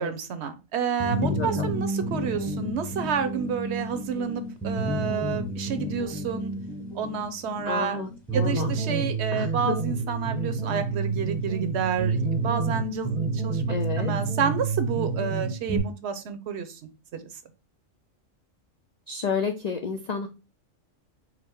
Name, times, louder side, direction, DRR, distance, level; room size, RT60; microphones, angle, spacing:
voice 1, 0.0-6.5 6.9-8.0 8.3-13.6 14.0-16.8 17.1-17.2, right 7 dB, 65° right, 9 dB, 0.9 m, -30 dB
sound 1, 1.0-15.8, right 3 dB, ahead, 0.8 m, -29 dB
voice 2, 1.2-1.7 7.7-8.8 9.3-9.8 13.7-14.1 19.1-20.3, left 5 dB, 80° left, 5 dB, 0.3 m, -31 dB
5.0 x 2.1 x 4.5 m, 0.29 s
omnidirectional pair, 1.3 m